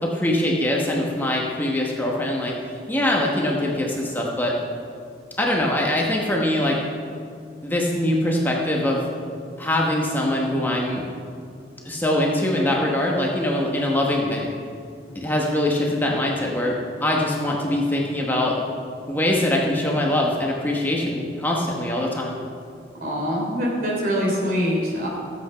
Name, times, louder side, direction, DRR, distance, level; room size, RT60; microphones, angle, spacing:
voice 1, 0.0-2.5 2.9-4.5 5.4-6.8 7.6-9.0 9.6-11.1 11.8-14.5 15.1-16.8 17.0-18.6 19.1-22.4, left 1 dB, 10° left, -2 dB, 1.1 m, -23 dB
voice 2, 23.0-25.1, equal, 50° right, -3 dB, 3.5 m, -24 dB
14.5 x 8.3 x 5.7 m, 2.4 s
head